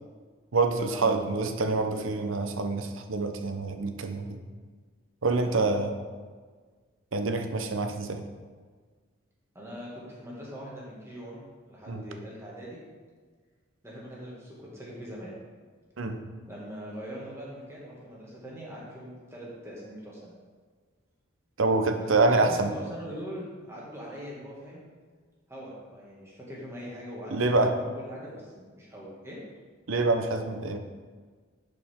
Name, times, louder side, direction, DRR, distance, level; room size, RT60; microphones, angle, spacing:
voice 1, 0.5-4.4 5.2-5.9 7.1-8.2 11.9-12.1 16.0-16.2 21.6-22.7 27.3-27.7 29.9-30.8, right 3 dB, 70° right, 6 dB, 0.7 m, -26 dB
voice 2, 9.6-12.8 13.8-15.3 16.5-20.3 22.0-24.9 25.5-29.4, equal, 15° right, -5 dB, 1.9 m, -42 dB
11.0 x 5.0 x 3.6 m, 1.5 s
head